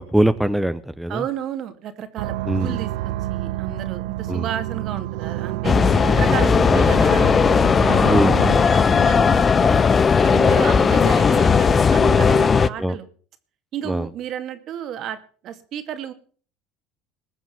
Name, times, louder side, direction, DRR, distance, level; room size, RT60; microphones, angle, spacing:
voice 1, 0.0-1.2 2.5-2.8 4.3-4.4 6.7-6.8 8.1-8.4 12.8-13.0 13.9-14.1, right 1 dB, 5° right, 12 dB, 0.8 m, -21 dB
voice 2, 1.1-5.7 6.1-7.4 7.8-9.8 10.2-13.1 13.7-15.2 15.4-16.1, right 10 dB, 55° right, 10 dB, 2.2 m, -32 dB
sound 1, 2.2-8.6, right 16 dB, 80° right, 0.7 m, -29 dB
sound 2, 5.6-12.7, left 5 dB, 30° left, 0.7 m, -16 dB
20.5 x 7.3 x 7.2 m, 0.43 s
supercardioid pair, 95°, 0 cm